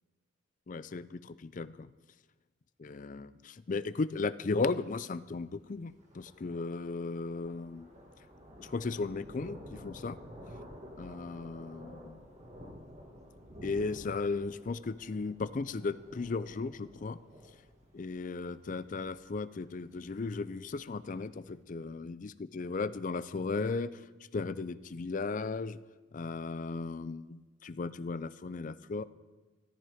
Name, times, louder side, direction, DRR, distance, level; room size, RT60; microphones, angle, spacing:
voice 1, 0.7-1.9 2.8-7.9 8.6-10.2 11.0-12.2 13.6-17.2 17.9-24.0 24.3-25.8 26.1-29.0, left 4 dB, 40° left, 15 dB, 0.4 m, -36 dB
Thunder, 4.7-21.5, equal, 35° right, 1.7 m, -52 dB
14.0 x 13.0 x 5.0 m, 1.3 s
head